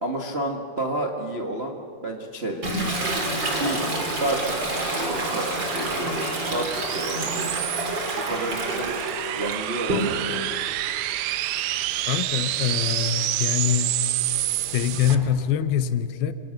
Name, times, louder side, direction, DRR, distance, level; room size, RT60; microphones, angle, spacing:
voice 1, 0.0-2.8 3.5-3.8 4.2-4.5 4.9-7.5 8.2-8.9 9.3-10.5, right 1 dB, 55° right, 0.6 m, -30 dB
Toilet flush, 2.6-10.4 10.8-15.1, right 1 dB, 30° right, 3.8 m, -30 dB
sound 1, 3.8-15.2, right 14 dB, 80° right, 2.7 m, -29 dB
voice 2, 12.1-14.0 14.7-16.3, left 9 dB, 75° left, 2.7 m, -24 dB
28.0 x 27.5 x 6.6 m
omnidirectional pair, 4.5 m